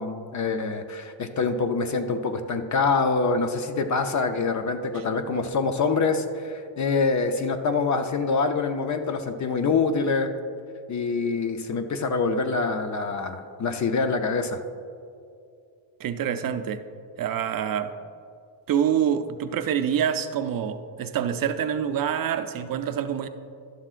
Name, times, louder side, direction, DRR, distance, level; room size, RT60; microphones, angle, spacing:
voice 1, 0.0-10.3 10.9-14.6, left 4 dB, 40° left, 8 dB, 0.6 m, -25 dB
voice 2, 16.0-16.8 17.2-17.9 18.7-23.3, right 9 dB, 50° right, 9 dB, 0.5 m, -26 dB
12.5 x 11.0 x 2.5 m, 2.5 s
cardioid pair, 135°, 45 cm